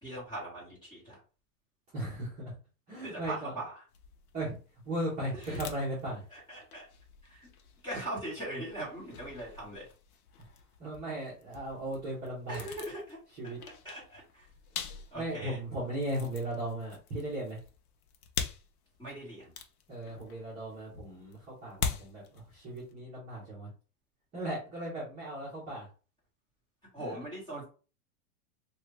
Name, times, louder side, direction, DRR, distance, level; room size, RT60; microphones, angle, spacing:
voice 1, 0.0-1.2 3.0-3.7 5.5-5.6 6.3-6.9 7.3-7.4 7.8-9.9 12.5-13.2 13.4-13.5 13.9-14.4 15.1-15.6 19.0-19.5 26.9-27.6, right 1 dB, 10° left, -8 dB, 1.8 m, -40 dB
voice 2, 1.9-2.5 2.9-3.6 4.3-4.6 4.8-6.2 10.8-12.7 13.3-13.6 15.1-17.6 19.9-23.7 24.3-25.9 27.0-27.2, right 1 dB, 20° right, -8 dB, 1.1 m, -37 dB
sound 1, 3.9-22.9, left 6 dB, 70° left, 0.8 m, -44 dB
3.0 x 2.6 x 3.3 m, 0.36 s
supercardioid pair, 170°, 46 cm